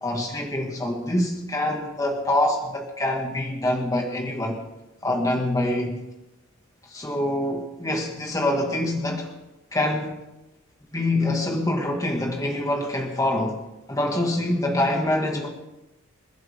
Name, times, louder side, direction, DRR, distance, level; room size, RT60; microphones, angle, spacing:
voice 1, 0.0-4.6 5.0-6.0 6.9-9.3 9.7-10.2 10.9-13.6 13.9-15.5, left 1 dB, 15° left, 1 dB, 2.0 m, -25 dB
27.5 x 11.5 x 3.7 m, 0.96 s
head